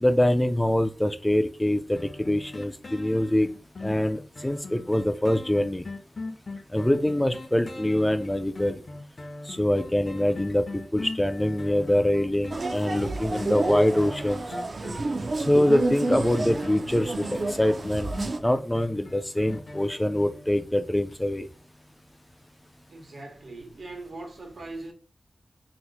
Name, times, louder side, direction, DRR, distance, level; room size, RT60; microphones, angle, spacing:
voice 1, 0.0-3.5 3.8-5.8 6.7-8.8 9.5-10.6 10.9-14.4 15.5-18.1 18.4-21.5, left 1 dB, 10° left, 0.3 m, -24 dB
sound 1, 2.0-20.7 21.1-21.2, left 3 dB, 50° left, 0.6 m, -41 dB
sound 2, 12.5-18.4, right 2 dB, 55° right, 0.4 m, -30 dB
voice 2, 22.9-24.9, right 2 dB, 80° right, 1.1 m, -40 dB
2.9 x 2.0 x 4.0 m
wide cardioid pair, 110°, 0 cm